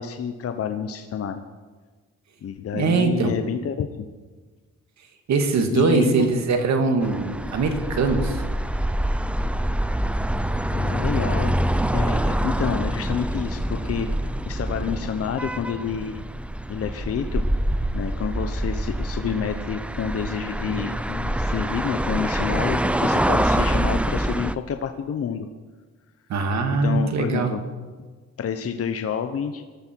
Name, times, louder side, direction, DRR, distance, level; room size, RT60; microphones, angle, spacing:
voice 1, 0.0-1.4 2.4-3.9 5.7-6.3 10.7-11.5 11.9-14.1 14.5-16.2 16.7-17.4 17.9-25.5 26.8-27.6 28.4-29.6, left 7 dB, 50° left, 7 dB, 1.0 m, -28 dB
voice 2, 2.7-3.3 5.3-8.4 26.3-27.5, right 4 dB, 65° right, 5 dB, 2.2 m, -22 dB
sound 1, 7.0-24.5, right 1 dB, 5° right, 0.6 m, -25 dB
19.0 x 14.0 x 4.7 m, 1.4 s
cardioid pair, 90°, 30 cm